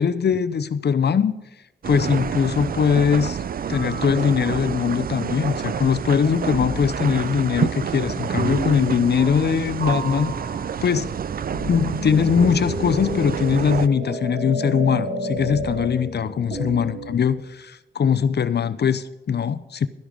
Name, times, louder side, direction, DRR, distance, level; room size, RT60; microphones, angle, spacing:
voice 1, 0.0-1.3 1.9-3.4 3.7-10.3 10.8-11.2 11.7-19.9, left 7 dB, 65° left, 14 dB, 0.7 m, -21 dB
sound 1, 1.8-13.9, right 7 dB, 55° right, 0.4 m, -29 dB
sound 2, 3.7-4.8 6.5-7.1 8.4-9.5 9.8-17.2, right 1 dB, 80° right, 2.7 m, -31 dB
12.0 x 11.0 x 5.2 m, 0.98 s
cardioid pair, 65°, 19 cm